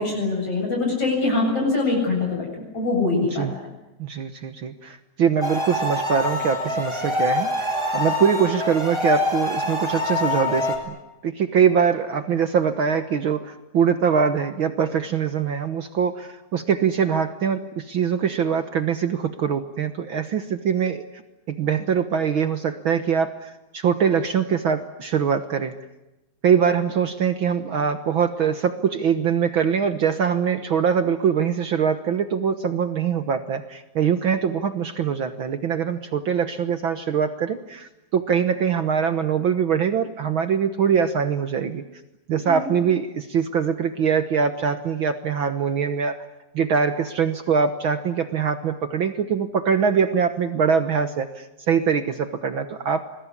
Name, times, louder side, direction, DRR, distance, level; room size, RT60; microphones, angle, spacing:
voice 1, 0.0-2.5 2.7-3.5 42.4-42.7, left 3 dB, 40° left, 0 dB, 8.9 m, -23 dB
voice 2, 4.0-10.9 11.2-21.0 21.5-25.7 26.4-41.8 42.3-46.2 46.5-53.0, right 7 dB, 75° right, 10 dB, 1.1 m, -23 dB
sound 1, 5.4-10.8, left 2 dB, 5° right, 6.9 m, -25 dB
27.5 x 21.5 x 9.9 m, 0.97 s
omnidirectional pair, 4.1 m